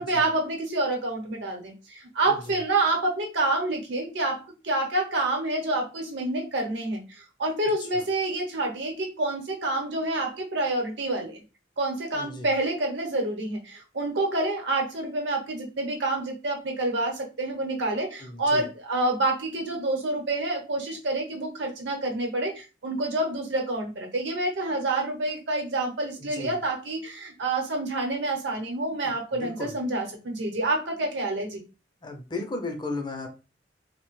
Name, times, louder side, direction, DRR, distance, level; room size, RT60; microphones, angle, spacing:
voice 1, 0.0-11.4 11.8-31.6, right 2 dB, 70° right, 1 dB, 0.9 m, -28 dB
voice 2, 2.3-2.6 7.8-8.1 12.1-12.5 18.2-18.7 26.2-26.6 29.0-29.8 32.0-33.3, left 2 dB, 25° left, 4 dB, 0.4 m, -36 dB
2.7 x 2.1 x 3.0 m, 0.30 s
head